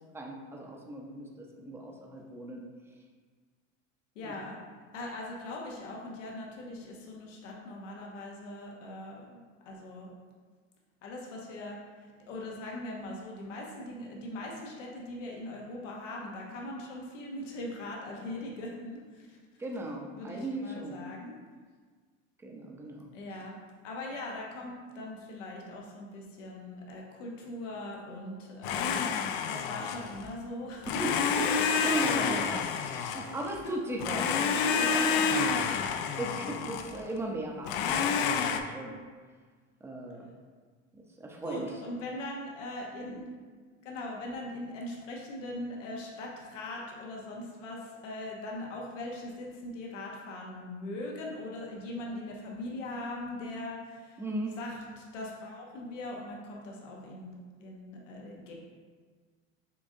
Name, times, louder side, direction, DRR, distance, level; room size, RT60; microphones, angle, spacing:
voice 1, 0.1-2.6 4.2-4.3 19.6-21.0 22.4-23.1 31.0-31.5 31.8-35.6 36.2-39.0 39.8-40.3 40.9-41.7 54.2-54.6, right 1 dB, 5° right, 0 dB, 0.6 m, -37 dB
voice 2, 4.2-4.6 4.9-9.4 9.7-10.1 11.0-11.8 12.3-19.4 20.1-21.4 23.1-23.6 23.8-31.0 31.4-31.5 32.6-32.8 33.1-33.3 34.2-35.8 41.4-43.3 43.8-54.2 54.6-57.3 57.6-58.5, left 1 dB, 85° left, -1 dB, 0.9 m, -41 dB
Domestic sounds home sounds, 28.6-30.3 30.8-33.6 34.0-37.0 37.7-38.6, left 6 dB, 65° left, 0.5 m, -29 dB
6.8 x 2.5 x 2.7 m, 1.5 s
supercardioid pair, 95°, 36 cm